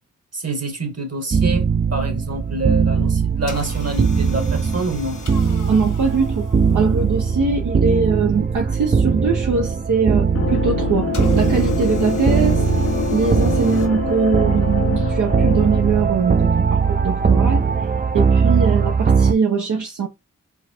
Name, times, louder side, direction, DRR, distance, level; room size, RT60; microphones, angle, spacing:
voice 1, 0.3-5.2, right 2 dB, 55° right, 1.6 m, -27 dB
sound 1, 1.3-19.3, right 6 dB, 30° right, 0.5 m, -19 dB
sound 2, 3.5-7.4 11.1-13.9, left 5 dB, 75° left, 1.4 m, -39 dB
voice 2, 5.7-6.5 6.7-12.6 13.1-17.6 18.1-20.1, right 5 dB, 75° right, 0.8 m, -21 dB
sound 3, 10.3-16.1, left 9 dB, 50° left, 0.5 m, -26 dB
4.5 x 2.3 x 4.3 m
cardioid pair, 45°, 31 cm